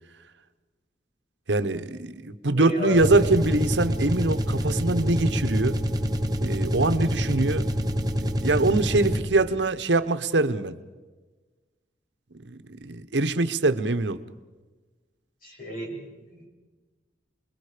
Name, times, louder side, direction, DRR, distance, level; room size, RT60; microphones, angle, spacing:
voice 1, 1.5-5.8 6.4-7.7 8.4-10.8 12.4-14.2, right 2 dB, 80° right, 11 dB, 1.1 m, -23 dB
voice 2, 2.5-3.3 15.4-16.5, equal, 50° left, -1 dB, 6.7 m, -33 dB
sound 1, 2.9-9.5, equal, 20° right, 1.2 m, -26 dB
29.5 x 22.0 x 5.1 m, 1.3 s
head